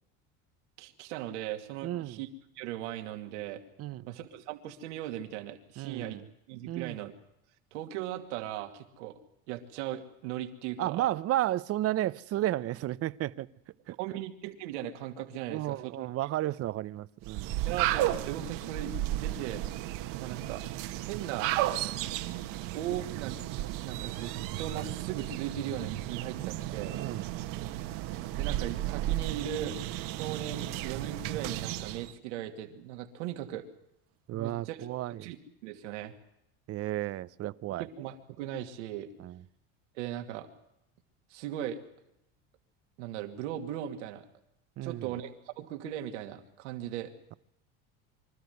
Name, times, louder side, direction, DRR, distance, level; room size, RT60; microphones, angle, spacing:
voice 1, 0.8-2.3 2.6-3.6 4.1-6.2 6.5-7.1 7.7-9.2 9.5-11.1 14.0-16.0 17.6-19.6 20.2-20.6 21.1-21.5 22.7-23.4 23.7-26.9 28.0-28.1 28.4-29.8 30.1-33.6 34.3-35.4 35.6-36.1 37.7-39.1 40.0-40.5 41.3-41.8 43.0-44.3 44.8-47.1, right 11 dB, 90° right, 2.5 m, -38 dB
voice 2, 1.8-2.2 3.8-4.1 5.8-6.2 6.7-7.0 10.8-13.5 13.9-14.2 15.5-17.6 27.0-27.3 34.3-35.3 36.7-37.8 39.2-39.4 44.8-45.1, right 14 dB, 45° right, 0.7 m, -33 dB
sound 1, 17.2-32.1, right 14 dB, 65° right, 1.6 m, -34 dB
25.0 x 13.0 x 9.4 m
supercardioid pair, 120°, 35 cm